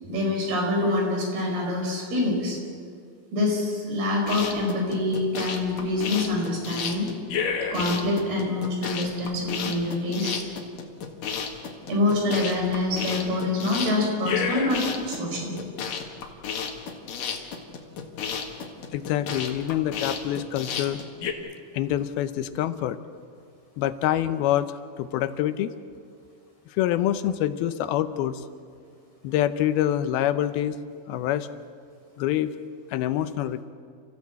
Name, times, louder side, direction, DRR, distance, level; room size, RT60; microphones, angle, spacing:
voice 1, 0.1-2.6 3.3-7.1 7.7-10.4 11.9-15.6, left 2 dB, 80° right, 0 dB, 7.1 m, -26 dB
sound 1, 4.2-21.3, left 6 dB, 65° left, 3.3 m, -32 dB
voice 2, 18.9-21.0 21.7-23.0 23.8-25.7 26.7-28.5 29.2-30.8 31.1-31.5 32.2-32.5 32.9-33.6, left 12 dB, 80° left, 11 dB, 2.7 m, -26 dB
29.5 x 15.5 x 8.4 m, 2.2 s
omnidirectional pair, 4.4 m